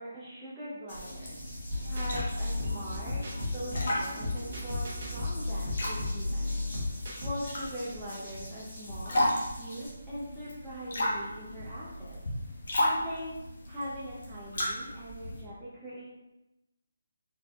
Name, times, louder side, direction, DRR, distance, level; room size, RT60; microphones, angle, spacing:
voice 1, 0.0-1.4 1.9-6.6 6.9-9.3 9.5-12.2 12.8-13.3 13.7-16.0, equal, ahead, -13 dB, 0.4 m, -41 dB
sound 1, 0.9-9.9, equal, 30° left, 1.4 m, -47 dB
sound 2, 1.0-15.4, left 1 dB, 50° left, 1.0 m, -35 dB
sound 3, 1.7-7.3, left 2 dB, 35° right, 0.8 m, -34 dB
4.0 x 3.4 x 2.3 m, 0.96 s
hypercardioid pair, 175°, 0 cm